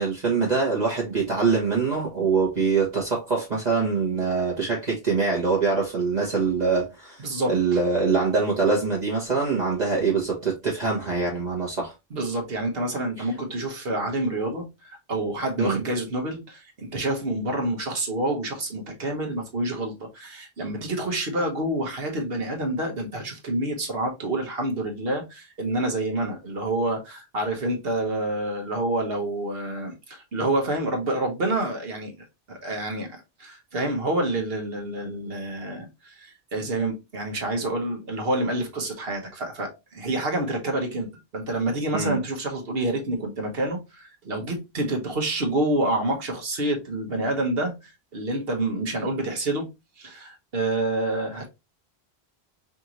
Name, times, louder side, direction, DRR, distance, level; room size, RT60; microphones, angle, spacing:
voice 1, 0.0-7.2 7.5-11.9 15.6-15.8 41.9-42.2, right 4 dB, 45° right, 1.2 m, -24 dB
voice 2, 7.2-7.5 12.1-32.1 32.5-41.1 41.3-49.7 50.0-51.5, right 1 dB, 65° right, 1.4 m, -28 dB
5.2 x 2.6 x 2.9 m
omnidirectional pair, 1.1 m